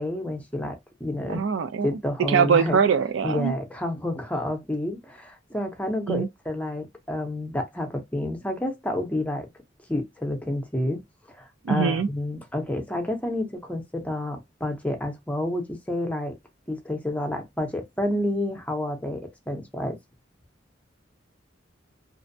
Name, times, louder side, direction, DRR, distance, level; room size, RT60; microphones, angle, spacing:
voice 1, 0.0-1.4 1.8-2.8 3.2-9.5 9.9-11.0 11.3-16.3 16.7-20.0, left 1 dB, 10° left, 0.6 m, -29 dB
voice 2, 1.3-1.9 2.3-3.5 6.1-6.3 11.6-12.1, right 6 dB, 80° right, 0.4 m, -22 dB
2.5 x 2.1 x 2.6 m
head